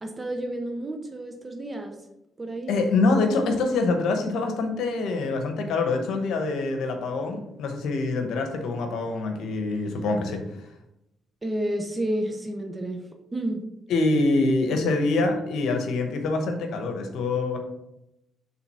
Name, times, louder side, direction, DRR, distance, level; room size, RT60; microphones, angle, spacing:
voice 1, 0.0-2.0 2.4-2.7 11.4-13.7 14.7-14.8, right 1 dB, 25° right, 4 dB, 0.9 m, -31 dB
voice 2, 2.7-10.4 13.9-17.6, left 3 dB, 80° left, 5 dB, 1.1 m, -25 dB
5.7 x 3.8 x 5.7 m, 0.86 s
cardioid pair, 90°, 0 cm